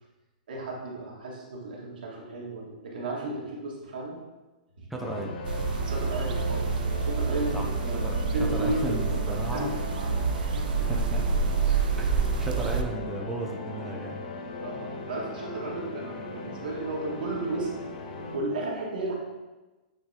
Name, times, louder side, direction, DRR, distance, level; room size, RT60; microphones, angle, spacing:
voice 1, 0.5-4.2 4.8-4.9 5.9-6.7 7.0-8.0 8.3-9.0 9.3-10.5 11.7-11.9 14.6-17.7 18.3-19.1, right 2 dB, 90° right, -3 dB, 1.8 m, -34 dB
voice 2, 4.9-5.3 7.5-7.7 8.0-8.1 8.5-9.7 10.8-11.2 12.0-14.2, right 2 dB, ahead, -2 dB, 0.5 m, -35 dB
sound 1, 5.0-18.4, left 3 dB, 65° left, 0.9 m, -38 dB
sound 2, 5.4-12.8, right 5 dB, 70° right, 0.6 m, -28 dB
8.6 x 3.9 x 2.9 m, 1.2 s
hypercardioid pair, 165°, 5 cm